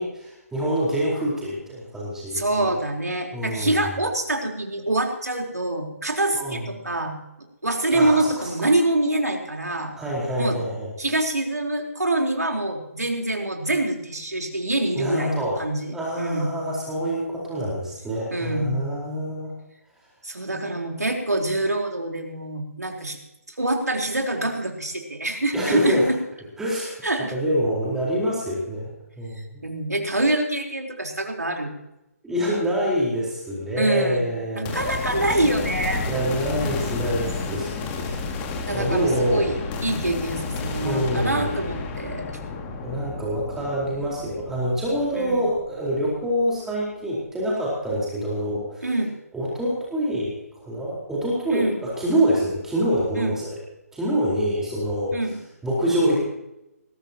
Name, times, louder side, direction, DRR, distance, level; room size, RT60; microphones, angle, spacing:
voice 1, 0.0-2.7 3.3-4.0 6.3-6.6 7.9-8.7 9.9-10.9 14.9-15.6 15.9-19.5 25.5-26.1 26.6-27.0 27.3-28.9 29.2-29.6 32.2-34.7 36.1-38.2 38.7-39.5 40.8-41.5 42.8-48.9 49.3-53.6 53.9-55.2 55.6-56.3, equal, 5° right, -5 dB, 4.4 m, -26 dB
voice 2, 2.3-7.1 7.6-9.9 10.4-10.6 11.0-16.5 18.3-18.8 20.2-23.2 23.5-26.2 27.0-27.3 29.6-31.7 33.8-34.3 34.6-36.0 38.7-42.3 45.1-45.5 48.8-49.1 51.5-51.8 53.1-53.4 55.1-55.4, right 1 dB, 80° right, 2 dB, 4.0 m, -25 dB
sound 1, 34.6-46.0, left 4 dB, 20° left, 2.3 m, -31 dB
20.5 x 18.0 x 2.9 m, 0.89 s
figure-of-eight pair, 145°, 9 cm